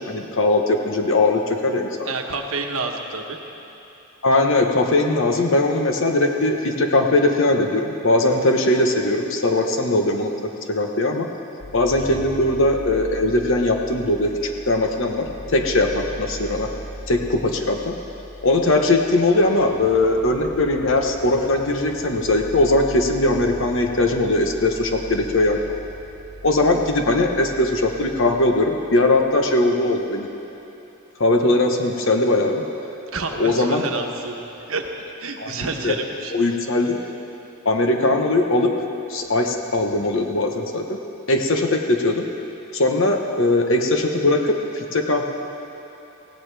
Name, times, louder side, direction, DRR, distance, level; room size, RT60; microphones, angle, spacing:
voice 1, 0.0-2.1 4.2-11.3 11.7-16.7 17.1-18.0 18.4-25.6 26.4-30.3 31.2-32.6 33.4-33.8 35.4-36.0 36.3-37.0 37.6-38.7 39.1-41.0 41.3-42.2 42.7-45.3, left 2 dB, 60° left, 3 dB, 1.1 m, -20 dB
voice 2, 2.0-3.4 12.0-12.1 33.1-34.4 34.7-34.8 35.2-36.3, right 3 dB, 70° right, 3 dB, 1.2 m, -28 dB
sound 1, 11.6-29.6, right 1 dB, 30° left, 1.1 m, -39 dB
17.0 x 16.5 x 3.5 m, 2.9 s
head